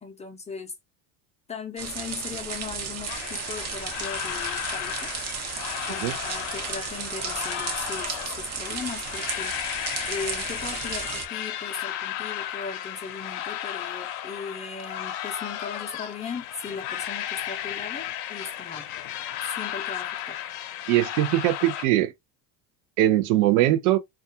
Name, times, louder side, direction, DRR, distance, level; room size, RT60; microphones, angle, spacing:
voice 1, 0.0-0.7 1.5-5.1 5.9-9.6 10.1-18.9 19.6-20.4, left 5 dB, 15° left, 0.4 m, -38 dB
sound 1, 1.8-11.3, right 6 dB, 35° right, 0.7 m, -34 dB
sound 2, 3.1-21.8, left 11 dB, 60° left, 0.6 m, -34 dB
voice 2, 20.9-22.1 23.0-24.0, right 14 dB, 85° right, 0.6 m, -21 dB
2.3 x 2.3 x 2.6 m
supercardioid pair, 105°, 44 cm